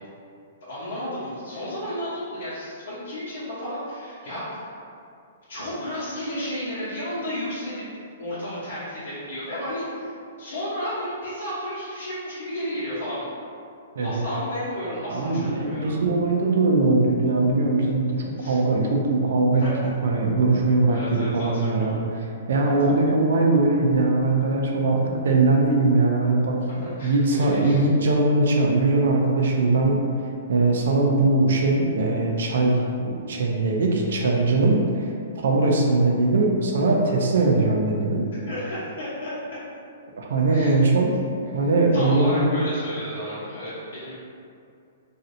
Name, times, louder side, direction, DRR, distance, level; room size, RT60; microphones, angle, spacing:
voice 1, 0.7-4.8 5.5-7.8 8.2-10.1 10.4-13.3 14.0-16.0 18.4-18.6 19.6-19.9 20.9-22.0 22.6-22.7 26.8-27.8 38.4-39.4 40.5-40.8 41.4-44.1, equal, 75° left, -12 dB, 0.9 m, -32 dB
voice 2, 15.1-22.0 22.5-30.0 30.5-35.0 35.4-38.2 40.2-41.1 41.5-42.6, right 2 dB, 60° right, 0 dB, 0.5 m, -21 dB
3.1 x 2.7 x 2.6 m, 2.5 s
hypercardioid pair, 175°, 0 cm